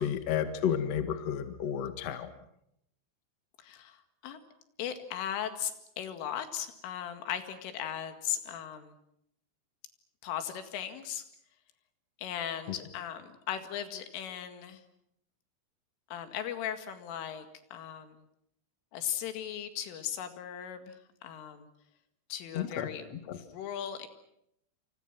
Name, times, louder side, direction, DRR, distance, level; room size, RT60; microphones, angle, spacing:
voice 1, 0.0-2.3 22.5-23.4, left 8 dB, 50° left, 9 dB, 1.9 m, -32 dB
voice 2, 3.6-4.4 4.8-8.9 10.2-11.2 12.2-14.8 16.1-17.5 17.7-18.2 18.9-21.0 21.2-21.7 22.3-24.1, left 9 dB, 90° left, 8 dB, 4.6 m, -37 dB
28.5 x 27.0 x 6.1 m, 0.76 s
omnidirectional pair, 5.5 m